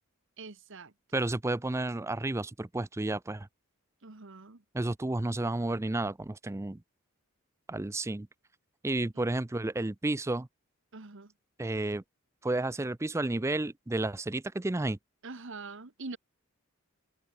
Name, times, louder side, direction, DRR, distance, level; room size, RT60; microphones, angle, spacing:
voice 1, 0.4-0.9 4.0-4.6 9.1-9.3 10.9-11.3 15.2-16.2, right 3 dB, 60° right, 1.3 m, -44 dB
voice 2, 1.1-3.5 4.7-6.8 7.7-8.3 8.8-10.5 11.6-12.0 12.4-15.0, right 2 dB, 15° right, 0.4 m, -31 dB
head